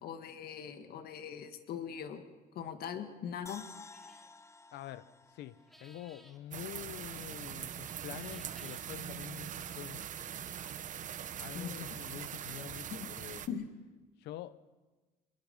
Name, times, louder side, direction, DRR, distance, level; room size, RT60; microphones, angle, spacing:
voice 1, 0.0-2.2 2.5-3.6 11.5-12.0 12.9-13.1 13.5-13.7, left 8 dB, 65° left, 1.8 m, -41 dB
sound 1, 3.5-6.7 7.0-7.1, left 3 dB, 15° left, 0.8 m, -54 dB
sound 2, 3.9-4.3 5.6-6.4 8.1-8.9, equal, ahead, 1.9 m, -59 dB
voice 2, 4.7-10.1 11.4-13.5 14.2-14.6, left 13 dB, 80° left, 0.8 m, -46 dB
sound 3, 6.5-13.5, right 9 dB, 50° right, 1.0 m, -42 dB
23.0 x 22.0 x 5.5 m
cardioid pair, 110°, 17 cm